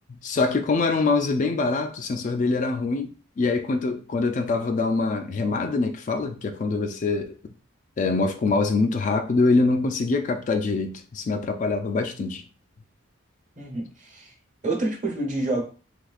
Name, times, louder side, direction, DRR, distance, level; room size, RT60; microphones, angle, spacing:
voice 1, 0.2-7.4 8.0-12.4, left 3 dB, 40° left, 0.3 m, -24 dB
voice 2, 13.5-14.3 14.6-15.6, right 2 dB, 40° right, 1.1 m, -28 dB
3.4 x 3.2 x 2.3 m
head